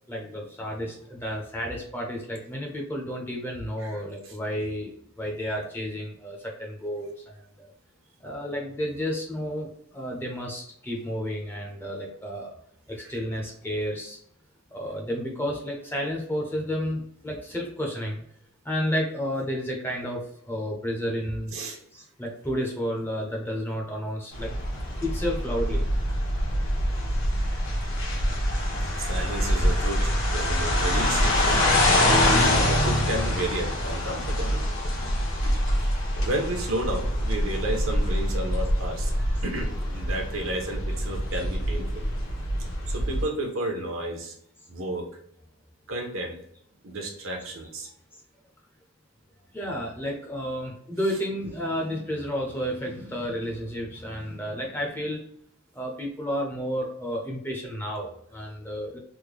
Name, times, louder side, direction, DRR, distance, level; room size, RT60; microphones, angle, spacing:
voice 1, 0.1-4.9 5.2-7.7 8.2-12.5 12.9-14.2 14.7-18.2 18.6-21.6 21.9-24.5 25.0-25.8 41.3-41.4 49.5-55.2 55.7-59.0, equal, 10° left, -1 dB, 0.6 m, -31 dB
voice 2, 3.8-4.4 13.0-13.1 21.5-21.8 28.9-31.6 32.4-34.7 35.4-35.6 36.2-39.1 39.4-42.1 42.9-44.3 44.7-45.1 45.9-46.4 46.8-47.9 51.0-51.2, right 1 dB, 70° right, 2 dB, 0.8 m, -32 dB
sound 1, 24.3-43.2, left 1 dB, 60° left, 1.1 m, -25 dB
3.5 x 2.2 x 3.2 m, 0.66 s
head